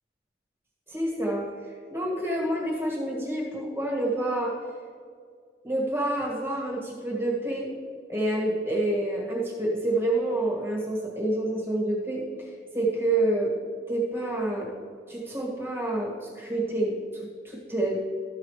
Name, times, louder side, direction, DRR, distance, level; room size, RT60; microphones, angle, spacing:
voice 1, 0.9-1.4 1.9-4.5 5.6-7.7 8.1-13.6 13.9-14.7 15.1-18.0, right 1 dB, 15° right, -3 dB, 1.5 m, -28 dB
13.0 x 7.3 x 3.2 m, 2.2 s
head